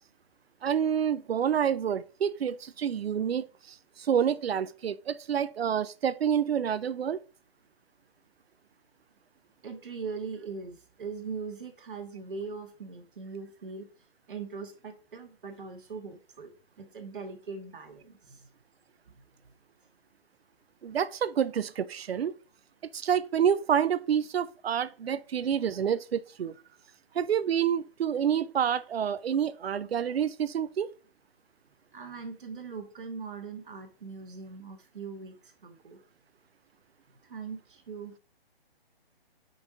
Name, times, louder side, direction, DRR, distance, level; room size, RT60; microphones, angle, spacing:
voice 1, 0.6-7.2 20.8-22.3 22.9-26.5 27.1-30.9, right 8 dB, 80° right, 0.6 m, -28 dB
voice 2, 9.6-13.9 14.3-18.5 19.1-19.5 31.9-36.0 37.1-38.2, right 5 dB, 60° right, 1.3 m, -41 dB
5.4 x 4.1 x 6.0 m
hypercardioid pair, 175°, 30 cm